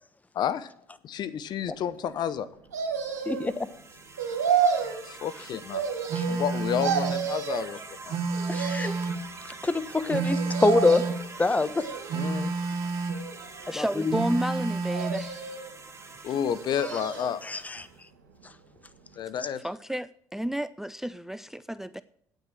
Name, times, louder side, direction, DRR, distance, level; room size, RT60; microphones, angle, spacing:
voice 1, 0.3-0.7 1.0-2.5 5.0-5.8 6.3-8.2 12.1-12.5 16.2-17.6 19.2-19.6, left 8 dB, 55° left, 0.7 m, -30 dB
sound 1, 2.7-3.5 4.2-5.0 5.7-6.5 6.8-7.7 8.3-9.1 10.3-11.2 11.8-12.5 13.1-13.9 14.9-15.7 16.4-17.4 17.8-17.9, right 7 dB, 90° right, 1.7 m, -30 dB
sound 2, 2.9-18.0, right 3 dB, 30° right, 2.6 m, -45 dB
voice 2, 3.3-3.7 6.1-6.2 8.5-8.9 9.6-11.0 11.4-11.8 13.7-13.9 17.4-17.8, left 3 dB, 20° left, 1.0 m, -25 dB
Telephone, 6.1-7.2 8.1-9.2 10.1-11.2 12.1-13.2 14.1-15.2, right 4 dB, 65° right, 1.2 m, -30 dB
voice 3, 13.6-15.5 19.6-22.0, equal, 5° right, 0.4 m, -31 dB
9.2 x 9.0 x 6.2 m
hypercardioid pair, 55°, 9 cm